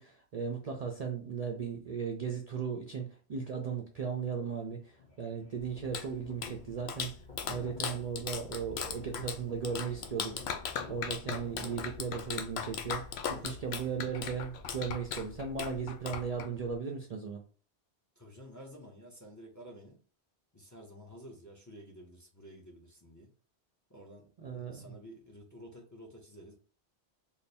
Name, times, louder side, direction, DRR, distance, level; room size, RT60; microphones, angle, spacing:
voice 1, 0.0-7.1 7.5-10.4 10.9-13.1 13.4-17.4 24.4-24.9, right 6 dB, 50° right, 2 dB, 0.5 m, -37 dB
sound 1, 4.1-4.6 4.9-12.0, left 4 dB, 50° left, 1.0 m, -52 dB
Clapping, 5.6-16.8, left 6 dB, 75° left, 0.8 m, -39 dB
voice 2, 18.2-20.0 20.5-23.3 23.9-26.5, equal, 20° left, -1 dB, 0.6 m, -51 dB
3.3 x 2.0 x 4.1 m, 0.40 s
omnidirectional pair, 1.1 m